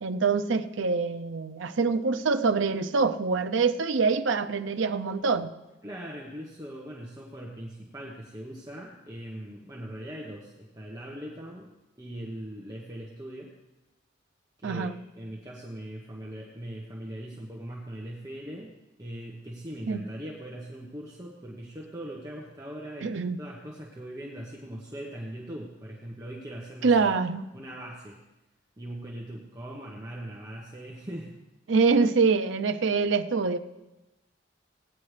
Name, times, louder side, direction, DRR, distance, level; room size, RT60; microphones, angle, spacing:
voice 1, 0.0-5.5 14.6-14.9 19.9-20.0 23.0-23.4 26.8-27.4 31.7-33.6, right 4 dB, 80° right, 9 dB, 0.6 m, -25 dB
voice 2, 5.8-11.7 12.0-13.5 14.6-18.7 19.0-23.1 23.4-27.1 27.5-28.2 28.8-31.3, right 1 dB, 20° right, -3 dB, 1.0 m, -40 dB
17.5 x 9.5 x 3.3 m, 1.0 s
head